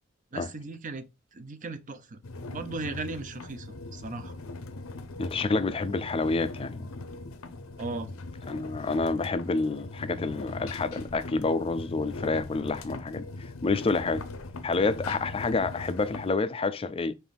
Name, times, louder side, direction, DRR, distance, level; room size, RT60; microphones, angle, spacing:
voice 1, 0.3-2.2 2.5-4.4 7.8-8.1, right 3 dB, 40° right, 0.6 m, -37 dB
sound 1, 2.2-16.3, left 2 dB, 75° left, 0.6 m, -40 dB
voice 2, 5.2-6.9 8.5-13.3 13.6-14.2 14.6-17.1, left 3 dB, 25° left, 0.4 m, -28 dB
5.2 x 2.6 x 3.9 m
head